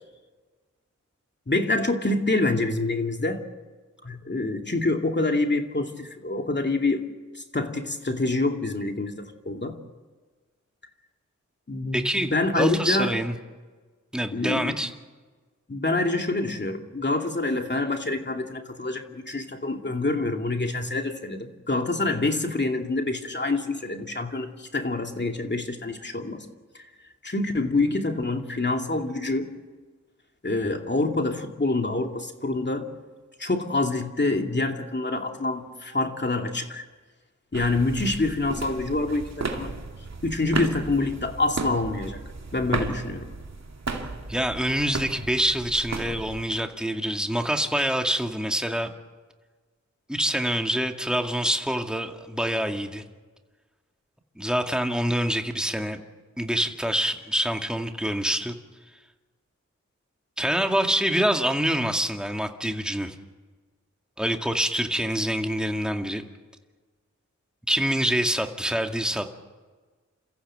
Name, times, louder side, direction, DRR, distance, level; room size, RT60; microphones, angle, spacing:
voice 1, 1.5-3.4 4.0-7.0 7.3-9.8 11.7-13.2 14.3-14.7 15.7-26.5 27.2-29.5 30.4-32.9 33.4-36.8 37.5-39.7 40.2-42.2 42.5-43.3, left 2 dB, 35° left, 4 dB, 2.5 m, -26 dB
voice 2, 11.9-13.3 14.1-14.9 44.3-48.9 50.1-53.0 54.4-56.0 56.4-58.5 60.4-63.2 64.2-66.2 67.7-69.4, equal, 5° right, 4 dB, 2.2 m, -26 dB
sound 1, 37.5-46.5, right 3 dB, 65° right, 2.6 m, -34 dB
29.0 x 15.0 x 7.8 m, 1.4 s
cardioid pair, 50°, 29 cm